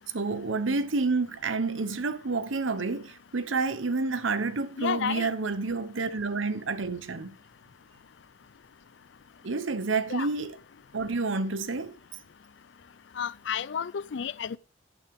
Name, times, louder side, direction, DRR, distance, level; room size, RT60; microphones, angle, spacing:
voice 1, 0.1-7.3 9.4-10.6 10.9-11.9, right 3 dB, 85° right, 1.0 m, -29 dB
voice 2, 4.8-5.3 10.1-10.3 13.2-14.6, left 7 dB, 65° left, 0.4 m, -31 dB
11.5 x 9.0 x 3.6 m
head